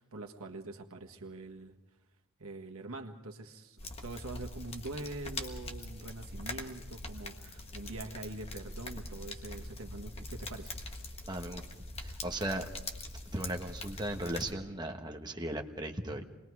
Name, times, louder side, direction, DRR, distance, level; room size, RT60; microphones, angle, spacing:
voice 1, 0.0-1.7 2.4-10.7, right 2 dB, 75° right, 3 dB, 1.6 m, -44 dB
sound 1, 3.8-14.5, left 2 dB, 30° left, 1.4 m, -43 dB
voice 2, 11.3-11.6 12.0-12.7 13.3-16.2, right 1 dB, 20° right, 4 dB, 1.3 m, -37 dB
27.0 x 21.0 x 4.8 m, 1.0 s
head